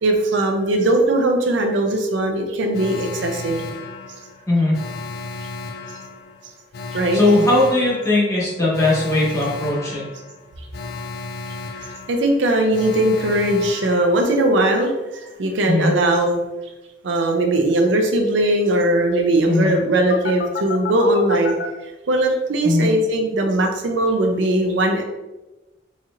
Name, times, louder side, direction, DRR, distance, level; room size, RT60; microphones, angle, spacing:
voice 1, 0.0-3.6 6.9-7.2 11.8-16.4 17.0-21.5 22.1-25.0, right 1 dB, 70° right, 3 dB, 0.5 m, -19 dB
Alarm, 2.7-14.6 20.1-21.7, left 4 dB, 55° left, 0.4 m, -33 dB
voice 2, 4.5-4.8 7.1-10.0 15.6-15.9 19.5-19.7 22.6-22.9, left 2 dB, 15° left, -6 dB, 1.2 m, -18 dB
4.2 x 2.8 x 2.4 m, 1.1 s
head